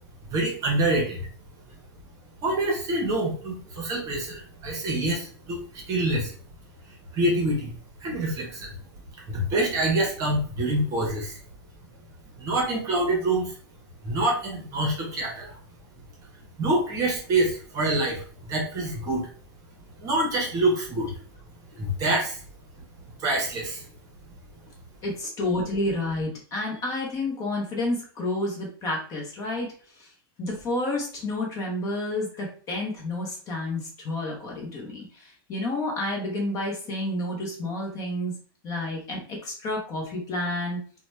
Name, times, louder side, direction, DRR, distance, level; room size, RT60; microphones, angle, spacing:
voice 1, 0.3-1.3 2.4-6.3 6.9-7.7 8.0-8.7 9.3-11.4 12.4-13.5 14.0-15.6 16.6-19.3 20.0-21.1 21.8-22.4 23.2-23.9, right 1 dB, 25° right, -1 dB, 0.9 m, -26 dB
voice 2, 25.0-29.7 30.0-30.1 30.4-38.3 38.6-40.8, left 1 dB, 25° left, -1 dB, 0.8 m, -30 dB
2.8 x 2.2 x 3.2 m, 0.43 s
supercardioid pair, 155°, 13 cm